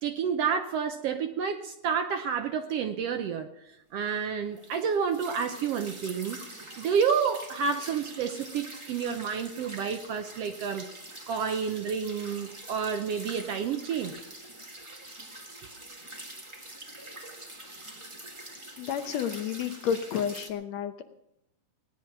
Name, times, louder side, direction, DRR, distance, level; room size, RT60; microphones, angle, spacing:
voice 1, 0.0-3.5 3.9-6.4 6.8-10.9 11.3-14.1, right 6 dB, 70° right, 7 dB, 1.6 m, -29 dB
sound 1, 4.6-20.5, right 1 dB, 20° right, 0.8 m, -45 dB
voice 2, 18.8-21.0, left 8 dB, 70° left, 8 dB, 1.9 m, -31 dB
18.0 x 10.5 x 6.0 m, 0.83 s
omnidirectional pair, 3.5 m